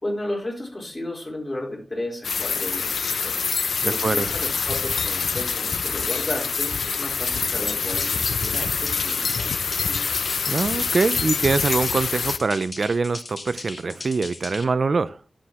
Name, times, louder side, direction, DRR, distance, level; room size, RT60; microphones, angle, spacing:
voice 1, 0.0-3.4 3.7-10.1, left 1 dB, 25° left, 4.2 m, -33 dB
sound 1, 2.2-12.4, left 5 dB, 90° left, 0.4 m, -25 dB
voice 2, 3.8-4.3 10.5-15.2, right 4 dB, 60° right, 0.4 m, -24 dB
sound 2, 7.9-14.6, left 3 dB, 45° left, 1.7 m, -38 dB
11.0 x 7.6 x 3.0 m
wide cardioid pair, 85°, 0 cm